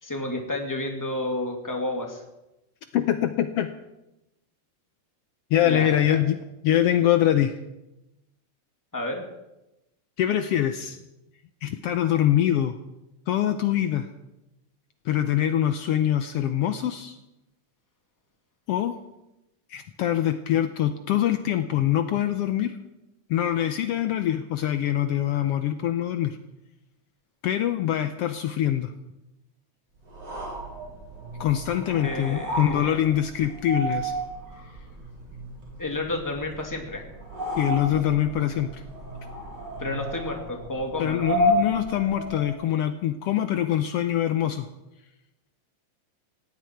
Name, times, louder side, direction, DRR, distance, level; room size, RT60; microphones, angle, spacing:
voice 1, 0.0-2.2 5.6-6.2 8.9-9.2 31.9-33.0 35.8-37.1 39.8-41.3, left 2 dB, 5° left, 2 dB, 1.7 m, -31 dB
voice 2, 2.9-3.7 5.5-6.4 6.6-7.6 10.2-11.0 11.6-12.8 13.3-14.1 15.0-17.2 18.7-19.0 19.7-22.8 23.3-26.4 27.4-28.9 31.4-34.1 37.6-38.8 41.0-44.7, left 11 dB, 85° left, 9 dB, 1.3 m, -24 dB
sound 1, 30.1-42.6, equal, 35° right, 4.5 m, -32 dB
17.5 x 17.0 x 4.6 m, 0.95 s
omnidirectional pair, 3.6 m